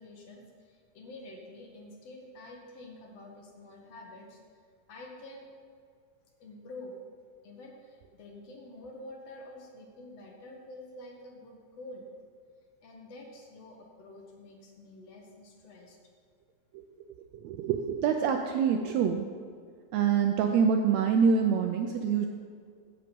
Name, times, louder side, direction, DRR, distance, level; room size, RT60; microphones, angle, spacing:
voice 1, 0.0-4.6 4.9-5.5 6.4-6.9 7.4-12.1 12.8-16.0, left 2 dB, 60° left, 0 dB, 2.1 m, -48 dB
voice 2, 17.4-19.3 19.9-22.3, right 6 dB, 80° right, 5 dB, 1.6 m, -26 dB
15.0 x 6.1 x 5.2 m, 2.2 s
omnidirectional pair, 3.6 m